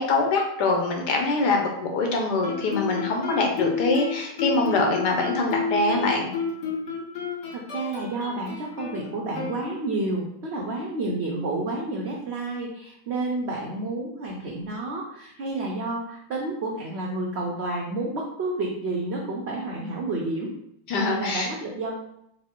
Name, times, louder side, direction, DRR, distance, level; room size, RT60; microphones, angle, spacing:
voice 1, 0.0-6.3 20.9-21.5, left 3 dB, 75° left, 1 dB, 1.3 m, -24 dB
Guitar, 2.4-10.1, left 5 dB, 55° left, 0.8 m, -31 dB
voice 2, 7.5-20.5 21.1-21.9, right 2 dB, 80° right, -2 dB, 0.5 m, -30 dB
4.1 x 2.1 x 4.3 m, 0.77 s
omnidirectional pair, 1.9 m